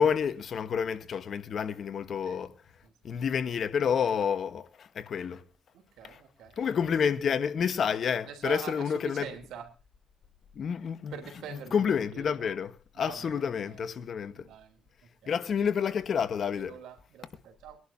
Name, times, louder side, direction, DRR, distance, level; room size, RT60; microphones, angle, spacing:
voice 1, 0.0-2.6 3.0-5.4 6.0-6.2 6.6-9.3 10.5-11.2 11.5-14.5 15.3-16.8, left 7 dB, 55° left, 1.3 m, -29 dB
voice 2, 5.7-6.7 8.2-9.7 11.1-11.8 12.1-12.6 12.9-13.8 14.3-15.4 16.5-17.8, right 8 dB, 85° right, 3.5 m, -45 dB
24.0 x 11.5 x 2.8 m
cardioid pair, 90°, 0 cm